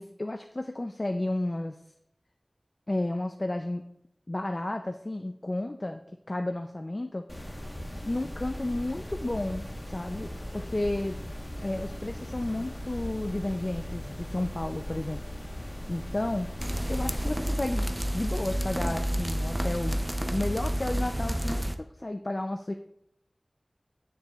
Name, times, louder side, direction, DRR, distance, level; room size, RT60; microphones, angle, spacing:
voice 1, 0.0-1.8 2.9-3.8 4.3-6.0 6.3-7.3 8.1-11.2 11.6-15.2 15.9-16.5 16.9-17.9 18.1-22.7, left 1 dB, 45° left, 5 dB, 0.4 m, -32 dB
sound 1, 7.3-17.3, left 1 dB, 25° left, 1.2 m, -38 dB
sound 2, 16.6-21.8, equal, 15° right, 0.5 m, -30 dB
9.1 x 6.6 x 2.4 m, 0.78 s
wide cardioid pair, 45°, 0 cm